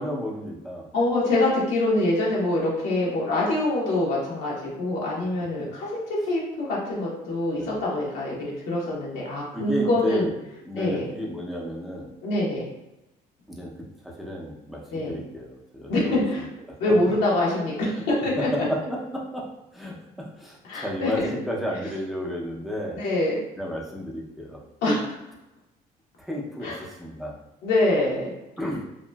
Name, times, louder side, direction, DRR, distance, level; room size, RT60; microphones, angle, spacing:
voice 1, 0.0-0.9 7.6-7.8 9.5-10.3 10.6-12.1 13.5-13.7 14.0-16.8 18.4-23.0 23.6-24.6 26.2-27.4 28.6-28.8, equal, ahead, -3 dB, 0.5 m, -32 dB
voice 2, 0.9-10.3 10.7-11.1 12.2-12.7 14.9-15.2 15.9-16.4 16.8-18.7 20.6-21.3 22.9-23.4 24.8-25.1 26.6-26.8 27.6-28.3, left 1 dB, 90° left, -5 dB, 1.1 m, -25 dB
2.8 x 2.4 x 2.2 m, 0.94 s
cardioid pair, 110°, 17 cm